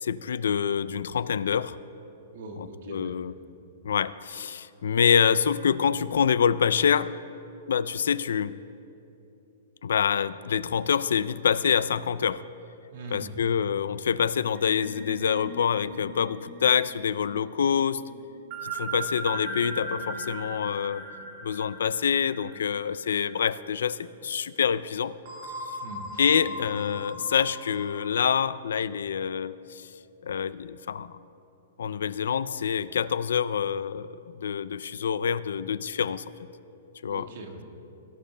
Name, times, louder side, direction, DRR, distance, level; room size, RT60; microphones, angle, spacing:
voice 1, 0.0-1.8 2.9-3.3 3.8-7.1 7.7-8.6 9.8-12.4 13.1-18.0 18.6-21.0 21.4-25.1 26.2-29.9 30.2-31.1 31.8-34.1 34.4-36.2 37.0-37.3, left 7 dB, 90° left, 17 dB, 0.3 m, -26 dB
voice 2, 2.3-3.2 12.9-13.4 25.8-26.2 26.4-26.6 37.1-37.6, right 3 dB, 55° right, 2 dB, 1.4 m, -41 dB
sound 1, 14.5-23.4 23.8-24.0 25.2-28.0, right 1 dB, 35° right, 1.9 m, -39 dB
18.0 x 11.5 x 2.2 m, 2.9 s
hypercardioid pair, 170°, 0 cm